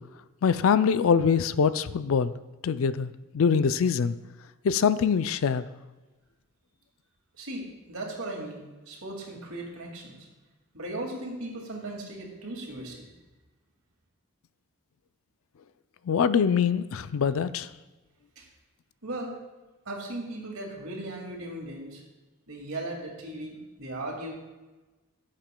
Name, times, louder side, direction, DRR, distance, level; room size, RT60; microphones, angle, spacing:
voice 1, 0.4-2.3 2.6-4.1 4.6-5.6 16.1-17.7, left 6 dB, 70° left, 14 dB, 0.4 m, -24 dB
voice 2, 7.4-10.2 10.7-13.1 18.4-18.5 19.0-19.3 19.9-22.0 22.5-24.4, right 1 dB, 75° right, 0 dB, 2.3 m, -37 dB
16.5 x 7.4 x 2.2 m, 1.2 s
head